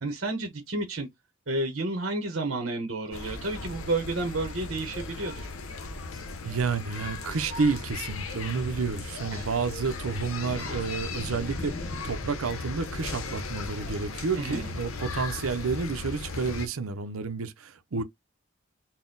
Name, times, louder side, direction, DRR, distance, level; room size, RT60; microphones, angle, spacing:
voice 1, 0.0-1.1 1.5-5.5 9.3-9.5 14.4-14.7, right 2 dB, 60° right, 1.0 m, -31 dB
sound 1, 3.1-16.7, left 3 dB, 75° left, 0.7 m, -37 dB
sound 2, 3.6-12.1, left 1 dB, 35° left, 0.7 m, -45 dB
voice 2, 6.4-11.7 12.0-18.0, right 4 dB, 80° right, 0.6 m, -30 dB
4.0 x 2.2 x 3.8 m
head